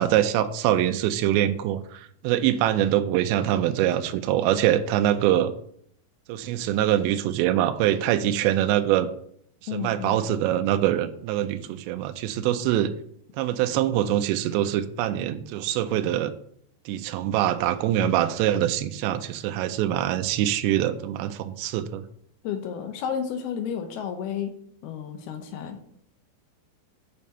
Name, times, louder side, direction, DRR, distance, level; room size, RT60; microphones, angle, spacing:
voice 1, 0.0-5.5 6.3-9.1 9.7-12.9 13.4-16.3 16.9-22.0, right 12 dB, 85° right, 8 dB, 2.5 m, -24 dB
voice 2, 9.7-10.3 22.4-24.5 24.8-25.8, left 8 dB, 80° left, 6 dB, 2.3 m, -32 dB
8.4 x 5.7 x 5.3 m, 0.67 s
omnidirectional pair, 5.6 m